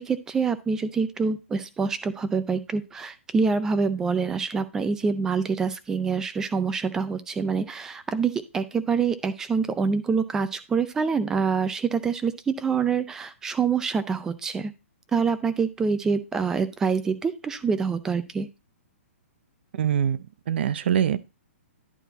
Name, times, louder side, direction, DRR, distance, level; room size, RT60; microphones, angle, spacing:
voice 1, 0.0-14.7 15.1-18.5, right 5 dB, 5° right, 0.4 m, -26 dB
voice 2, 19.7-21.2, right 9 dB, 50° right, 0.6 m, -24 dB
11.0 x 4.4 x 3.9 m
hypercardioid pair, 165°, 7 cm